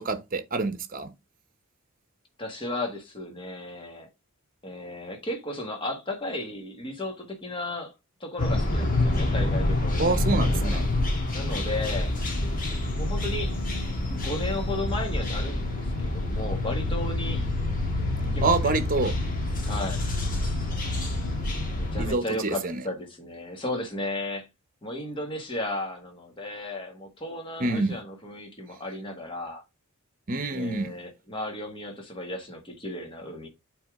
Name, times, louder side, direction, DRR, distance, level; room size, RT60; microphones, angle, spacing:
voice 1, 0.1-1.1 10.0-10.9 17.2-17.5 18.4-19.1 22.0-22.9 27.6-28.0 30.3-31.0, right 3 dB, 40° right, 1.0 m, -27 dB
voice 2, 2.4-4.1 4.6-7.9 8.2-10.2 10.5-10.8 11.3-12.1 12.9-13.6 14.1-17.5 18.3-18.7 19.6-20.0 21.8-24.5 24.8-29.6 30.5-33.5, left 1 dB, 20° left, 1.6 m, -34 dB
sound 1, 8.4-22.1, left 2 dB, 40° left, 1.6 m, -27 dB
8.5 x 3.6 x 3.7 m
head